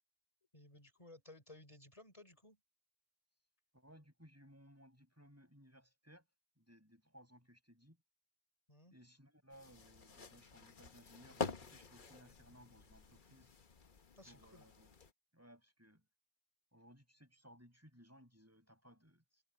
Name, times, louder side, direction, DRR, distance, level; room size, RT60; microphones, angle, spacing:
voice 1, 0.5-2.6 8.7-9.0 14.2-14.6, left 2 dB, 35° left, 4.4 m, -58 dB
voice 2, 3.7-6.3 6.6-8.0 8.9-13.5 14.3-15.0 15.3-16.1 16.7-19.4, equal, 15° right, 5.9 m, -62 dB
sound 1, 9.5-15.1, left 5 dB, 55° left, 1.2 m, -47 dB
omnidirectional pair, 1.0 m